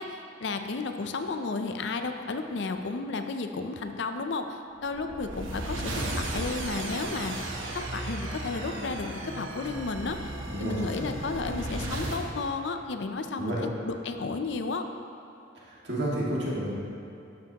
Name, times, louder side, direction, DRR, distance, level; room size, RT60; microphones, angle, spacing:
voice 1, 0.0-7.3 7.7-10.3 10.6-13.6 13.8-14.9, left 3 dB, 65° left, 7 dB, 0.5 m, -33 dB
sound 1, 4.8-12.2, right 1 dB, 90° right, 1.1 m, -35 dB
voice 2, 10.5-11.1 13.4-13.6 15.7-16.7, right 1 dB, 60° right, -6 dB, 2.0 m, -31 dB
11.5 x 7.3 x 2.9 m, 2.8 s
head